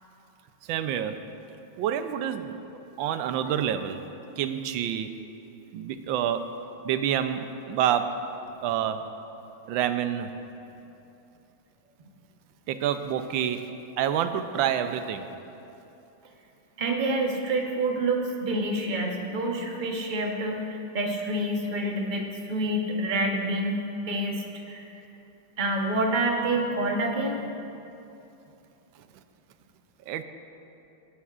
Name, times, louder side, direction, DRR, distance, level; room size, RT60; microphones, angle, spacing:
voice 1, 0.6-1.2 1.8-2.6 3.0-4.0 4.4-5.1 5.7-6.5 6.8-8.2 8.6-9.0 9.7-10.3 12.7-13.7 14.0-15.3 30.1-30.2, right 9 dB, 75° right, 9 dB, 1.3 m, -27 dB
voice 2, 16.8-24.8 25.6-27.4, right 1 dB, 40° right, 1 dB, 0.7 m, -27 dB
20.0 x 11.5 x 2.5 m, 2.8 s
omnidirectional pair, 2.4 m